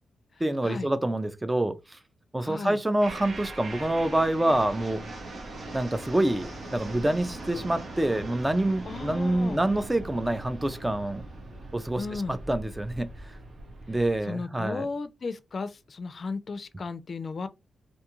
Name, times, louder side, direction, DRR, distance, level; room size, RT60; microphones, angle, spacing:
voice 1, 0.4-2.0 2.3-5.0 5.7-11.2 11.7-13.1 13.9-14.9, right 1 dB, 15° right, 0.4 m, -27 dB
voice 2, 2.4-2.8 8.9-9.6 12.0-12.4 14.3-17.5, left 4 dB, 55° left, 0.4 m, -35 dB
sound 1, 3.0-14.2, right 2 dB, 60° right, 0.9 m, -40 dB
2.5 x 2.3 x 2.9 m
cardioid pair, 65°, 0 cm